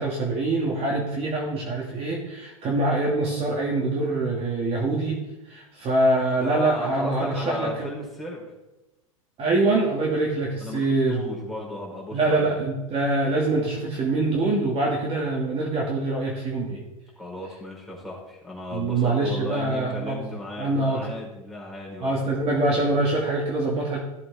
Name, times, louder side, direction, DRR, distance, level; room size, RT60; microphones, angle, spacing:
voice 1, 0.0-5.2 5.5-7.9 9.4-11.2 12.1-16.8 18.7-20.3 20.6-21.0 22.0-24.0, right 2 dB, 35° right, -2 dB, 2.5 m, -24 dB
voice 2, 6.4-8.4 10.6-12.6 17.2-22.4, left 2 dB, ahead, -2 dB, 4.4 m, -35 dB
15.5 x 7.6 x 3.7 m, 1.0 s
hypercardioid pair, 90°, 18 cm